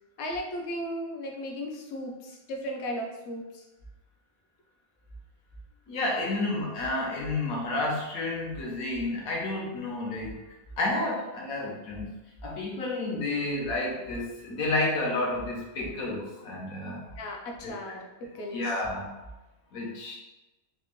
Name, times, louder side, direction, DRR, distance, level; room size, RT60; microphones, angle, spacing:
voice 1, 0.2-3.7 6.3-6.4 17.2-18.7, equal, 60° left, 1 dB, 0.8 m, -36 dB
voice 2, 5.9-10.4 10.8-12.1 12.4-17.1 17.6-17.7 18.5-19.2 19.7-20.2, left 2 dB, 85° left, -2 dB, 1.3 m, -30 dB
4.2 x 2.1 x 3.0 m, 1.0 s
omnidirectional pair, 1.5 m